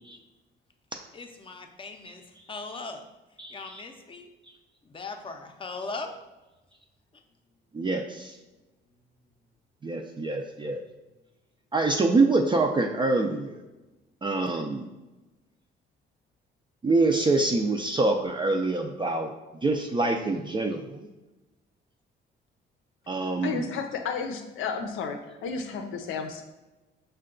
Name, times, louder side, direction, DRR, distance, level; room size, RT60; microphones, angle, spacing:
voice 1, 1.1-3.1 3.5-4.3 4.8-6.1, left 3 dB, 25° left, 5 dB, 0.6 m, -39 dB
voice 2, 3.4-3.8 7.7-8.4 9.8-10.8 11.7-13.6 14.2-14.9 16.8-19.3 19.6-21.1 23.1-23.7, right 3 dB, 25° right, 3 dB, 0.4 m, -25 dB
voice 3, 23.4-26.4, left 5 dB, 90° left, 5 dB, 0.6 m, -32 dB
5.5 x 2.2 x 3.7 m, 1.1 s
cardioid pair, 90°, 20 cm